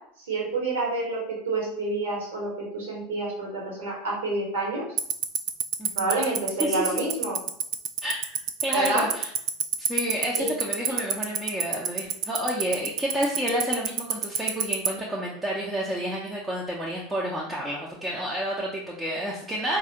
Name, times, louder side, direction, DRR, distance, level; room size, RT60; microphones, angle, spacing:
voice 1, 0.3-1.2 1.4-4.8 5.9-7.4 8.7-9.0 10.4-10.5 10.9-11.0, right 2 dB, 70° right, -2 dB, 1.3 m, -28 dB
Tick-tock, 5.0-14.9, right 11 dB, 50° right, 0.3 m, -23 dB
voice 2, 5.8-6.2 6.6-7.0 8.0-8.2 8.6-9.3 9.8-19.8, equal, 15° right, -4 dB, 0.6 m, -30 dB
4.0 x 2.5 x 2.8 m, 0.67 s
figure-of-eight pair, 80°, 0 cm